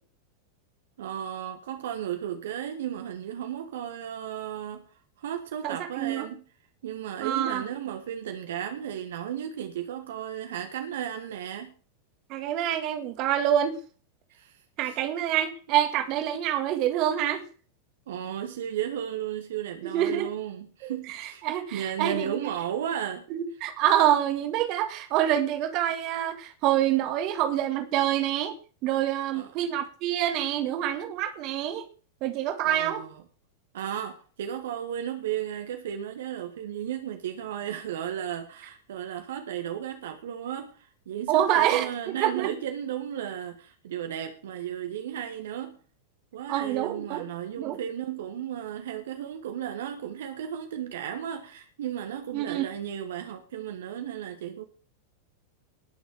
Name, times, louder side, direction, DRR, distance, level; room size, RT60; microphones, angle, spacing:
voice 1, 1.0-6.5 6.8-11.7 14.3-15.0 15.7-15.8 18.1-23.2 29.3-29.7 32.6-33.2 33.7-45.8 46.3-54.6, right 10 dB, 60° right, 1.6 m, -34 dB
voice 2, 5.6-6.3 7.2-7.6 12.3-13.8 14.8-17.4 19.9-20.3 20.8-22.4 23.3-28.5 28.8-31.9 32.2-33.0 41.3-42.5 46.5-47.3 47.6-47.8 52.3-52.7, right 11 dB, 40° right, 2.0 m, -26 dB
20.0 x 7.0 x 4.9 m
figure-of-eight pair, 90°, 0 cm